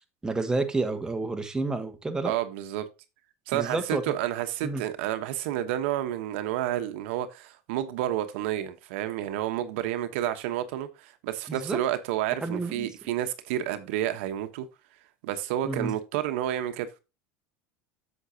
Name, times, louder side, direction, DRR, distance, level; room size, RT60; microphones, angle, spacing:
voice 1, 0.2-2.3 3.5-4.0 4.6-4.8 11.5-11.8 12.4-12.9 15.6-15.9, right 3 dB, 10° right, 1.3 m, -29 dB
voice 2, 2.2-2.9 3.5-14.7 15.2-16.9, right 12 dB, 75° right, 1.1 m, -30 dB
8.3 x 7.1 x 2.8 m
supercardioid pair, 105°, 7 cm